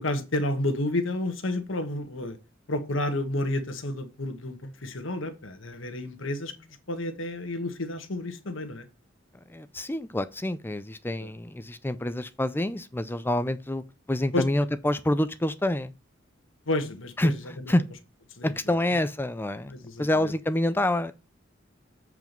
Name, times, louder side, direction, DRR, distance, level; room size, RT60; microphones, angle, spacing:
voice 1, 0.0-2.4 2.7-6.6 6.9-8.8 11.2-11.3 14.3-14.4 16.7-17.7 18.4-18.5 19.7-20.3, left 1 dB, 70° left, 1.4 m, -31 dB
voice 2, 9.5-13.8 14.1-15.9 17.2-17.3 17.7-17.8 18.4-19.7 20.0-21.1, left 1 dB, 10° left, 0.5 m, -27 dB
7.8 x 4.8 x 5.2 m
head